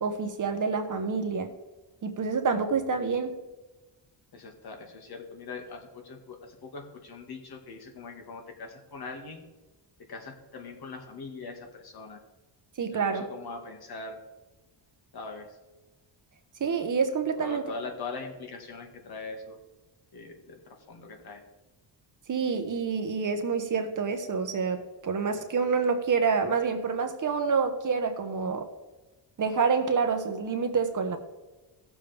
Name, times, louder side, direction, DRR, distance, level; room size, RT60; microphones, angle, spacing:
voice 1, 0.0-1.5 2.0-3.3 12.8-13.3 16.6-17.6 22.3-28.7 29.4-31.2, right 5 dB, 45° right, 6 dB, 1.2 m, -27 dB
voice 2, 4.3-9.4 10.1-12.2 12.9-14.2 15.1-15.6 17.4-19.6 20.1-21.4, left 3 dB, 55° left, 3 dB, 1.9 m, -41 dB
16.0 x 7.2 x 3.5 m, 1.1 s
cardioid pair, 110°, 44 cm